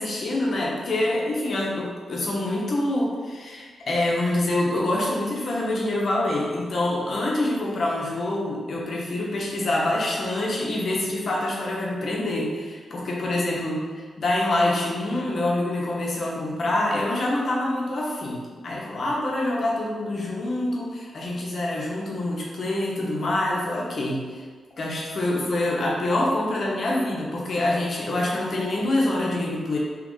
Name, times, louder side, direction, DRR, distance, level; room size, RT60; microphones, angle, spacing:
voice 1, 0.0-24.4 24.8-29.8, left 1 dB, 45° left, -3 dB, 0.6 m, -26 dB
2.8 x 2.4 x 3.7 m, 1.5 s
wide cardioid pair, 175°, 0 cm